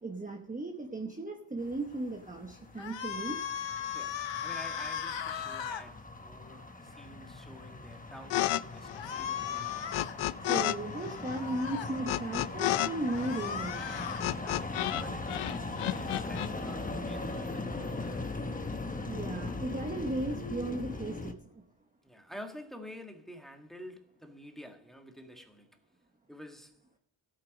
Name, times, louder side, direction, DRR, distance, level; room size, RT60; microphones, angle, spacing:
voice 1, 0.0-3.4 10.4-13.8 19.0-21.6, right 2 dB, 15° right, 1.0 m, -36 dB
sound 1, 1.6-21.3, left 2 dB, 15° left, 1.1 m, -40 dB
sound 2, 2.8-5.8 9.0-10.2 11.3-11.9 13.0-14.3, left 8 dB, 65° left, 1.1 m, -37 dB
voice 2, 3.8-10.1 14.3-18.3 22.0-25.8 26.3-26.8, equal, ahead, 1.6 m, -49 dB
sound 3, 8.3-8.6 8.9-10.8 11.0-15.0 15.3-16.5, left 15 dB, 90° left, 0.6 m, -31 dB
15.5 x 9.0 x 5.2 m
wide cardioid pair, 145°, 49 cm